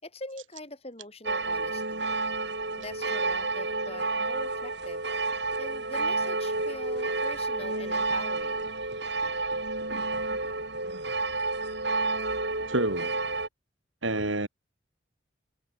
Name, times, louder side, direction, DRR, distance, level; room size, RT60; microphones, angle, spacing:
voice 1, 0.0-2.1 2.8-5.0 5.6-8.7, left 2 dB, 30° left, 6.0 m, -43 dB
sound 1, 1.3-13.5, right 3 dB, 60° right, 7.8 m, -30 dB
voice 2, 12.7-13.1 14.0-14.5, right 2 dB, 80° right, 6.6 m, -28 dB
head